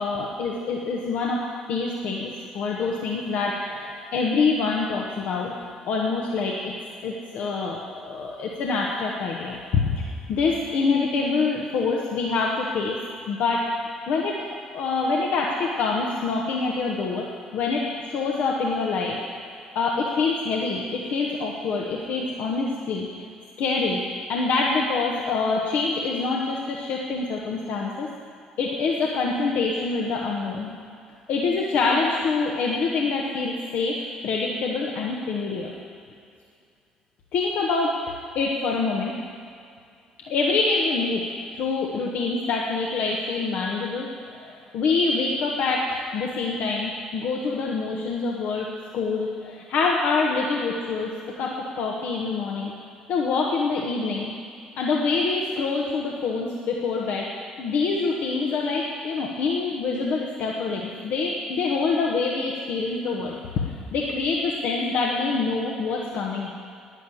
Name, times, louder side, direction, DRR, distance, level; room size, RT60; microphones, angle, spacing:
voice 1, 0.0-5.5 5.9-6.7 7.0-7.8 8.0-9.8 10.3-13.0 13.3-13.7 14.1-14.4 14.7-17.3 17.5-19.5 19.7-23.2 23.6-24.0 24.3-28.1 28.6-30.7 31.3-35.7 37.3-37.9 38.3-39.1 40.3-41.2 41.5-44.1 44.3-48.7 48.9-52.7 53.1-54.3 54.8-57.2 57.6-63.4 63.9-66.5, left 4 dB, 60° left, -2 dB, 1.4 m, -25 dB
10.5 x 9.8 x 7.9 m, 2.3 s
figure-of-eight pair, 50°, 3 cm